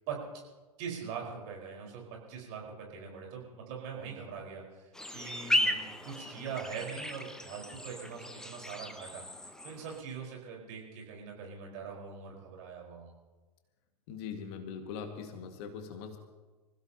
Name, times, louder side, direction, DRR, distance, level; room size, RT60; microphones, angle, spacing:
voice 1, 0.1-0.4 0.8-9.2 9.6-13.1, right 6 dB, 40° right, 0 dB, 4.8 m, -42 dB
sound 1, 4.9-10.0, left 1 dB, 5° left, 0.8 m, -35 dB
voice 2, 14.1-16.2, left 6 dB, 40° left, 5 dB, 1.9 m, -41 dB
26.0 x 16.0 x 2.9 m, 1.3 s
figure-of-eight pair, 105°, 21 cm